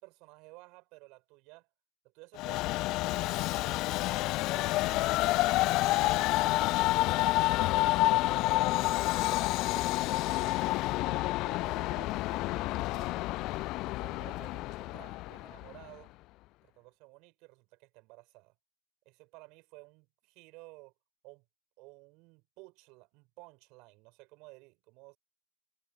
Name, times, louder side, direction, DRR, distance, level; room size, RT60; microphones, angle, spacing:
voice 1, 0.0-1.7 2.0-6.3 6.8-8.1 8.4-13.2 13.8-16.1 16.6-18.5 19.0-20.9 21.2-21.4 21.8-25.2, right 26 dB, 40° right, 4.5 m, -55 dB
Train, 2.4-15.8, left 19 dB, 40° left, 0.4 m, -29 dB
figure-of-eight pair, 90°, 0 cm